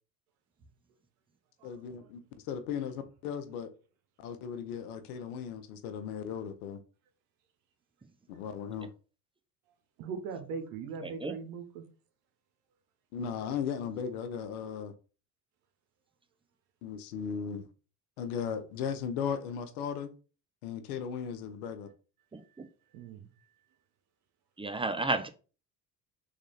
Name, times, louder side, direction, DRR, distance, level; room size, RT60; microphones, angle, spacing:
voice 1, 1.6-3.7 4.2-6.8 8.3-8.9 13.1-14.9 16.8-17.7 18.2-20.1 20.6-21.9, left 7 dB, 85° left, 0.6 m, -36 dB
voice 2, 10.0-11.8 22.9-23.3, right 5 dB, 80° right, 0.9 m, -40 dB
voice 3, 11.0-11.3 22.3-22.4 24.6-25.3, right 2 dB, 15° right, 0.5 m, -32 dB
3.2 x 2.6 x 3.9 m
hypercardioid pair, 65°, 43 cm